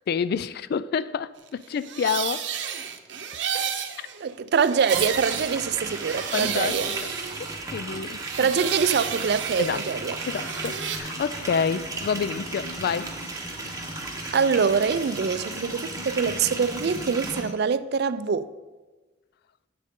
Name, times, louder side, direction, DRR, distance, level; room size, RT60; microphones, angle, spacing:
voice 1, 0.1-2.5 6.3-7.1 7.4-8.2 9.6-9.8 10.3-13.2, left 6 dB, 60° left, 0.3 m, -28 dB
sound 1, 1.6-7.8 8.1-11.0, right 8 dB, 85° right, 0.7 m, -32 dB
voice 2, 4.2-6.9 8.4-10.2 14.3-18.5, right 6 dB, 60° right, 0.4 m, -24 dB
sound 2, 4.9-17.4, right 3 dB, 20° right, 1.1 m, -35 dB
sound 3, 8.2-17.5, left 2 dB, 35° left, 0.9 m, -42 dB
10.5 x 7.7 x 3.7 m
head